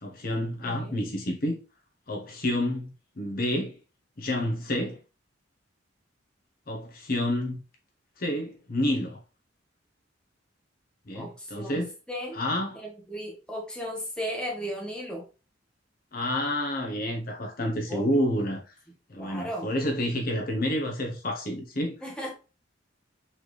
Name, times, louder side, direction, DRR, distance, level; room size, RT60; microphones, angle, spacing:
voice 1, 0.0-1.6 2.1-3.7 4.2-5.0 6.7-7.6 8.2-9.2 11.1-11.9 12.3-12.8 16.1-18.6 19.1-22.0, left 1 dB, 45° left, 0.9 m, -29 dB
voice 2, 0.6-1.0 11.1-12.4 12.7-15.2 17.9-18.2 19.2-19.7 22.0-22.3, equal, 5° left, 1.1 m, -36 dB
4.1 x 3.4 x 3.1 m
head